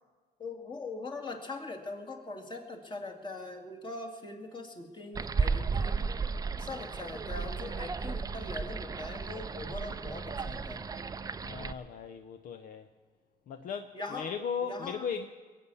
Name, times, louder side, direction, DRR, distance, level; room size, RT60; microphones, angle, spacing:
voice 1, 0.4-6.2 6.6-10.8 13.9-14.3 14.6-15.1, left 3 dB, 30° left, 3 dB, 2.2 m, -41 dB
sound 1, 5.1-11.7, right 5 dB, 20° right, 0.5 m, -34 dB
voice 2, 11.4-12.9 13.5-15.3, left 6 dB, 55° left, 8 dB, 0.7 m, -37 dB
22.0 x 8.4 x 7.0 m, 1.4 s
cardioid pair, 110°, 17 cm